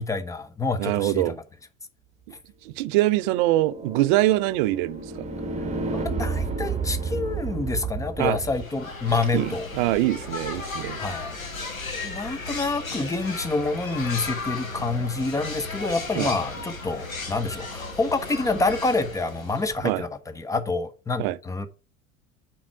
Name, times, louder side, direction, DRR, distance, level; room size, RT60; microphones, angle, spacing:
voice 1, 0.0-1.2 5.9-9.7 11.0-11.4 12.0-21.7, left 3 dB, 10° left, 0.7 m, -27 dB
voice 2, 0.8-1.4 2.7-5.1 8.2-8.4 9.3-11.0 16.2-16.3 19.8-20.0 21.2-21.4, right 16 dB, 40° right, 0.5 m, -23 dB
sound 1, 3.1-8.6, right 4 dB, 15° right, 1.7 m, -31 dB
sound 2, 8.3-20.0, left 3 dB, 80° left, 2.0 m, -35 dB
7.2 x 4.6 x 4.7 m
figure-of-eight pair, 80°, 41 cm